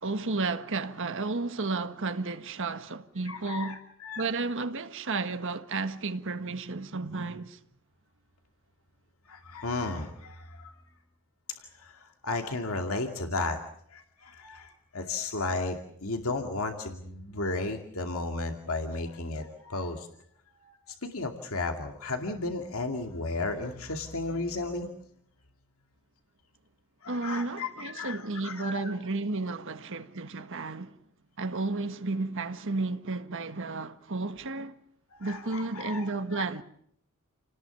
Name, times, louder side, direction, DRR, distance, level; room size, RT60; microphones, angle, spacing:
voice 1, 0.0-3.8 4.2-7.6 27.1-30.9 31.4-34.8 35.2-36.6, right 3 dB, 60° right, 1.6 m, -32 dB
voice 2, 3.2-4.3 9.3-10.8 11.8-11.9 12.2-13.6 13.9-20.1 20.6-20.7 21.0-24.9 27.0-28.8 35.1-36.4, left 3 dB, 75° left, 2.4 m, -34 dB
29.5 x 19.0 x 7.1 m
head